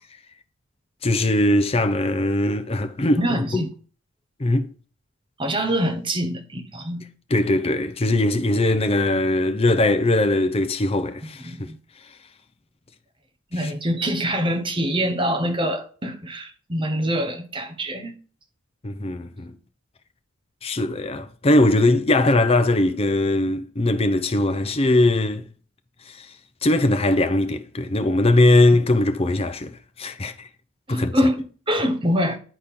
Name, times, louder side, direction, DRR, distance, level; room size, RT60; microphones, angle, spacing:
voice 1, 1.0-3.2 4.4-4.7 7.3-11.7 13.6-13.7 18.8-19.5 20.6-25.5 26.1-26.3 26.6-30.5 30.9-31.1, left 1 dB, 30° left, 0.6 m, -20 dB
voice 2, 3.2-3.7 5.4-7.0 11.4-11.8 13.5-18.1 30.9-32.4, equal, 25° right, 1.0 m, -24 dB
10.0 x 4.3 x 3.7 m
head